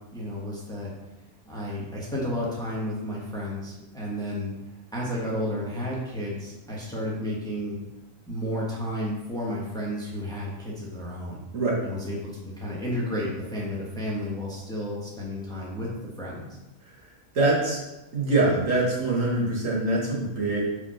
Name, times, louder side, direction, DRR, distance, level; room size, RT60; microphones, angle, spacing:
voice 1, 0.1-0.9 1.5-4.5 4.9-7.8 8.3-11.4 11.8-15.9 16.2-16.6, equal, 5° left, -5 dB, 1.3 m, -32 dB
voice 2, 17.3-17.8 18.1-20.6, right 2 dB, 55° right, -4 dB, 1.9 m, -24 dB
5.7 x 4.3 x 5.7 m, 1.0 s
omnidirectional pair, 1.6 m